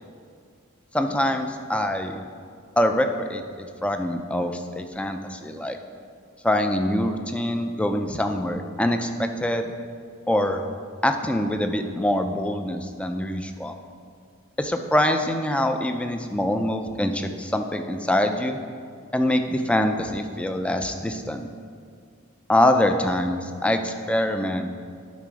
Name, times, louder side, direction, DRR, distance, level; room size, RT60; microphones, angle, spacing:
voice 1, 0.9-2.2 2.8-5.8 6.4-9.7 10.3-10.6 11.0-13.7 14.6-18.6 19.1-21.4 22.5-24.7, left 1 dB, 5° left, 6 dB, 0.4 m, -24 dB
11.5 x 4.1 x 4.8 m, 2.2 s
head